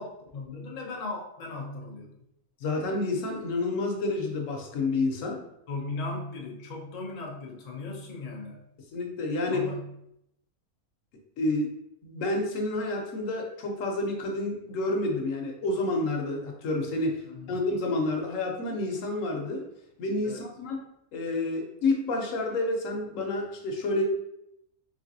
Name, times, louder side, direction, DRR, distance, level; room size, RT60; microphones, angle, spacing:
voice 1, 0.0-2.1 5.7-8.6 9.5-9.8 17.3-17.6 20.2-20.5, left 3 dB, 50° left, -1 dB, 0.4 m, -37 dB
voice 2, 2.6-5.4 8.9-9.7 11.4-11.7 12.0-19.6 20.0-20.8 21.1-24.0, left 2 dB, 70° left, 2 dB, 1.0 m, -29 dB
3.3 x 3.2 x 2.6 m, 0.79 s
omnidirectional pair, 1.5 m